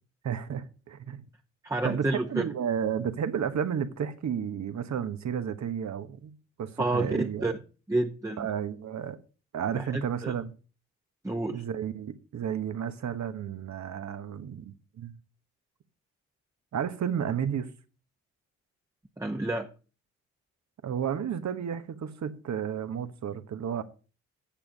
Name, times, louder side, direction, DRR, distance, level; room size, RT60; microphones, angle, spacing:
voice 1, 0.2-1.2 1.8-7.5 8.4-9.2 9.5-10.5 11.5-15.1 16.7-17.7 20.8-23.8, right 8 dB, 60° right, 1.3 m, -32 dB
voice 2, 1.6-2.5 6.8-7.5 7.9-8.5 9.7-10.3 11.2-11.6 19.2-19.7, right 2 dB, 10° right, 1.1 m, -29 dB
8.9 x 7.1 x 5.2 m
supercardioid pair, 50°, 32 cm